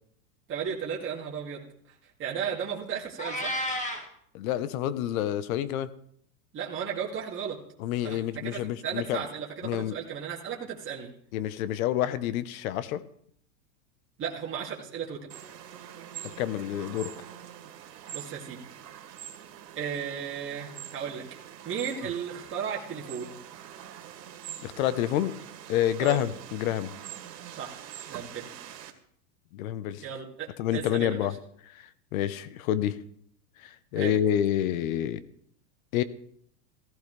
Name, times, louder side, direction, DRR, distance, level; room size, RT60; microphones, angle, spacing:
voice 1, 0.5-1.7 2.2-3.6 6.5-7.6 8.0-11.1 14.2-15.2 18.1-18.6 19.8-21.2 21.6-23.4 26.0-26.2 27.6-27.8 28.1-28.5 30.0-31.3 33.9-34.1, right 7 dB, 25° right, -3 dB, 2.5 m, -35 dB
Meow, 3.2-4.1, equal, 15° left, 1.9 m, -31 dB
voice 2, 4.3-5.9 7.8-9.2 9.6-9.9 11.3-13.0 16.2-17.1 24.6-25.3 25.7-26.9 29.5-30.0 30.6-31.3 32.1-33.0 33.6-35.2 35.9-36.0, left 11 dB, 60° left, 15 dB, 1.1 m, -28 dB
sound 1, 15.3-28.9, right 10 dB, 85° right, 2.5 m, -44 dB
15.0 x 15.0 x 3.4 m, 0.67 s
supercardioid pair, 135°, 48 cm